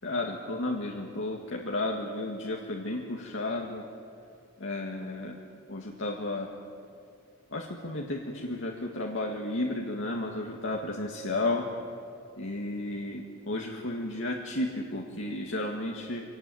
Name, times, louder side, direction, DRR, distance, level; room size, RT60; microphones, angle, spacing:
voice 1, 0.0-3.9 4.6-5.4 5.7-6.5 7.5-11.7 12.4-16.2, left 2 dB, 65° left, 0 dB, 2.0 m, -33 dB
24.5 x 19.0 x 9.3 m, 2.6 s
head